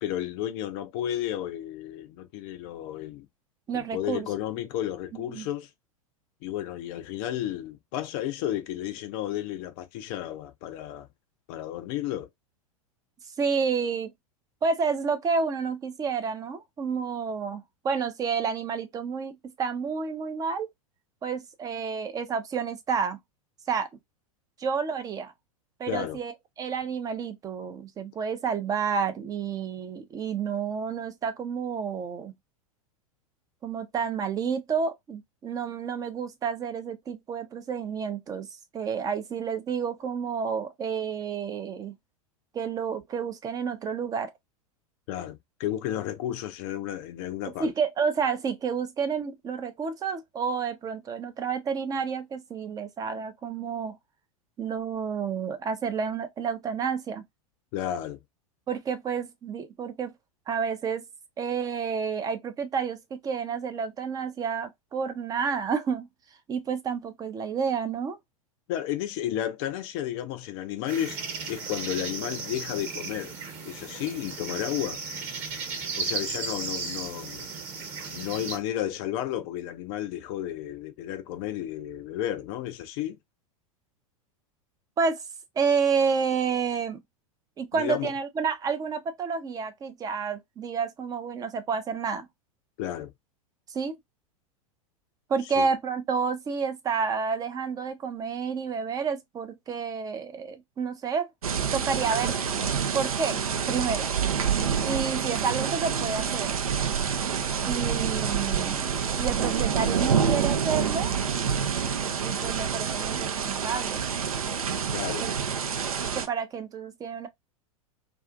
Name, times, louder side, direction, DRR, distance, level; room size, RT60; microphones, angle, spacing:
voice 1, 0.0-3.3 3.7-5.7 6.4-11.1 11.5-12.3 25.9-26.2 45.1-47.7 57.7-58.2 68.7-71.2 71.5-73.3 73.6-75.0 76.0-77.5 78.1-83.2 87.8-88.1 92.8-93.1 95.6-95.7 114.9-115.3, left 12 dB, 40° left, 0.4 m, -32 dB
voice 2, 3.7-4.3 5.1-5.5 13.4-14.1 14.6-20.7 21.2-23.2 23.7-23.9 24.6-25.3 25.8-32.3 33.6-38.5 38.7-42.0 42.5-44.3 47.6-54.0 54.6-57.2 58.7-60.1 60.5-61.1 61.4-66.1 66.5-68.2 85.0-85.2 85.6-87.0 87.6-92.3 93.7-94.0 95.3-101.3 101.7-102.4 102.9-104.1 104.8-106.6 107.5-108.9 109.2-111.1 112.2-114.1 115.2-115.3 116.1-117.3, right 6 dB, 20° right, 0.5 m, -30 dB
sound 1, 70.9-78.6, right 4 dB, 35° right, 1.0 m, -35 dB
sound 2, 101.4-116.3, right 7 dB, 75° right, 0.5 m, -27 dB
2.5 x 2.4 x 2.4 m
figure-of-eight pair, 90°, 18 cm